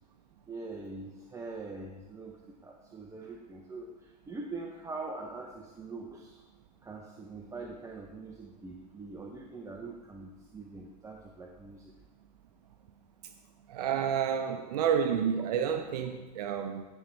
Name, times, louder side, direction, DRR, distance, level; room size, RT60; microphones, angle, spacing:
voice 1, 0.5-6.4 6.8-11.9, right 3 dB, 15° right, 1 dB, 0.7 m, -43 dB
voice 2, 13.7-16.9, right 8 dB, 70° right, 7 dB, 0.6 m, -30 dB
13.5 x 5.3 x 3.3 m, 1.2 s
hypercardioid pair, 100°, 21 cm